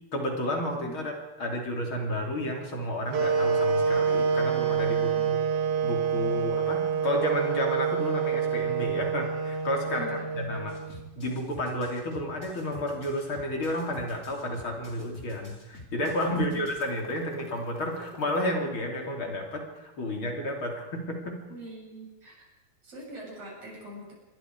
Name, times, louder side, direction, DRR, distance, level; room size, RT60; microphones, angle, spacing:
voice 1, 0.1-1.1 1.4-5.4 5.8-21.4, left 1 dB, 45° left, 1 dB, 4.2 m, -31 dB
sound 1, 3.1-11.1, right 6 dB, 85° right, 3.3 m, -27 dB
voice 2, 4.9-5.3 10.0-10.2 16.3-16.7 21.5-22.4 22.8-24.1, right 1 dB, 55° right, -2 dB, 8.1 m, -43 dB
sound 2, 10.7-18.4, left 1 dB, 20° left, 3.9 m, -47 dB
26.0 x 22.0 x 4.9 m, 0.99 s
omnidirectional pair, 3.3 m